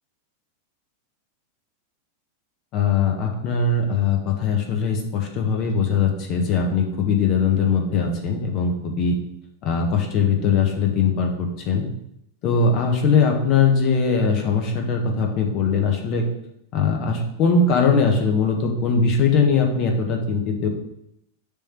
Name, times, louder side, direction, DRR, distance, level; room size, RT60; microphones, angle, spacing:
voice 1, 2.7-9.2 9.6-11.8 12.4-16.2 16.7-20.7, left 5 dB, 40° left, 2 dB, 1.3 m, -21 dB
6.9 x 3.4 x 5.9 m, 0.80 s
figure-of-eight pair, 90°, 0 cm